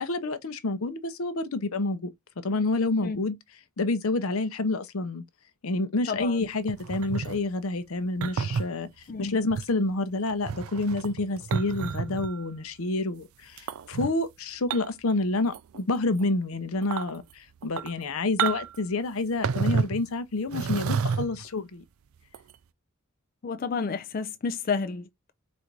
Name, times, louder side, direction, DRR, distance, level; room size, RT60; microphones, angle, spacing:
voice 1, 0.0-2.1 2.4-3.4 3.8-5.2 5.6-8.9 9.2-21.8, left 2 dB, 75° left, 0.7 m, -28 dB
sound 1, 6.7-7.4 8.2-8.7 9.5-9.7 10.3-12.4 13.6-14.1 14.7-15.1 15.4-15.8 16.2-16.3 16.8-17.1 17.6-18.0 18.4-18.8 19.4-20.0 20.5-21.5 22.3-22.5, right 6 dB, 75° right, 0.4 m, -30 dB
voice 2, 23.4-25.3, left 5 dB, 40° left, 0.4 m, -31 dB
4.1 x 2.6 x 4.5 m
head